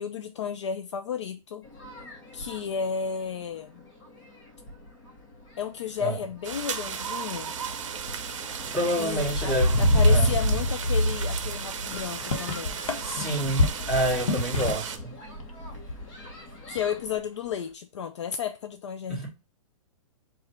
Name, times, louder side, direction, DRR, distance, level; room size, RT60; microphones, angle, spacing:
voice 1, 0.0-1.6 2.3-3.9 5.6-7.6 9.0-12.8 16.7-19.3, left 7 dB, 55° left, 0.5 m, -33 dB
sound 1, 1.7-2.7 3.4-3.5 4.0-4.3 4.6-5.2 5.9-6.1 6.5-17.2, equal, 20° left, 1.2 m, -29 dB
sound 2, 6.4-15.0, right 7 dB, 65° right, 0.7 m, -35 dB
voice 2, 8.7-10.3 13.0-15.2 19.1-19.3, right 1 dB, ahead, 2.0 m, -28 dB
sound 3, 11.8-11.9 12.1-15.0 15.3-16.4 16.7-17.0, left 3 dB, 85° left, 1.2 m, -28 dB
4.9 x 2.5 x 4.2 m
hypercardioid pair, 170°, 17 cm